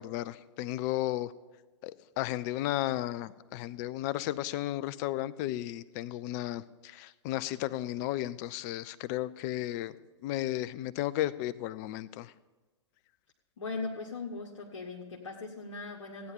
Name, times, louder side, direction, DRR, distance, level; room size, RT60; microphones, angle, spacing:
voice 1, 0.0-1.3 1.8-1.9 2.2-9.9 10.2-12.3, left 14 dB, 35° left, 17 dB, 0.5 m, -34 dB
voice 2, 13.6-16.3, left 3 dB, 70° left, 0 dB, 1.4 m, -39 dB
15.5 x 9.5 x 5.6 m, 1.2 s
figure-of-eight pair, 105°, 16 cm